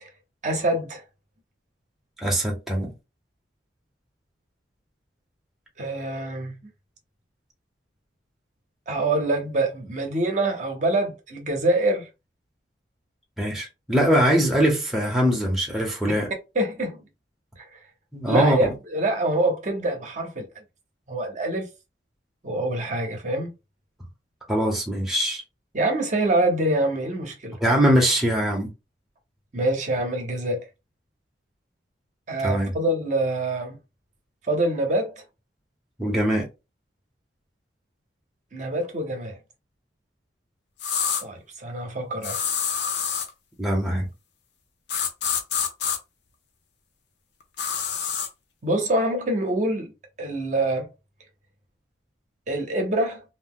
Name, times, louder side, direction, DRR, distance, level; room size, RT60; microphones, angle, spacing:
voice 1, 0.4-1.0 5.8-6.6 8.9-12.1 16.5-17.0 17.6-17.8 18.3-20.5 21.1-21.6 22.4-23.5 25.7-27.6 29.5-30.6 32.3-33.8 34.5-35.2 38.5-39.4 41.2-42.4 48.6-49.9 50.2-50.9 52.5-53.2, right 2 dB, 40° right, 0.7 m, -25 dB
voice 2, 2.2-2.9 13.4-16.3 18.1-18.7 24.5-25.4 27.6-28.7 32.4-32.7 36.0-36.5 43.6-44.1, equal, ahead, 0.7 m, -22 dB
sound 1, 40.8-41.2 42.2-43.3 44.9-46.0 47.6-48.3, left 7 dB, 65° left, 0.6 m, -26 dB
2.6 x 2.1 x 3.6 m
head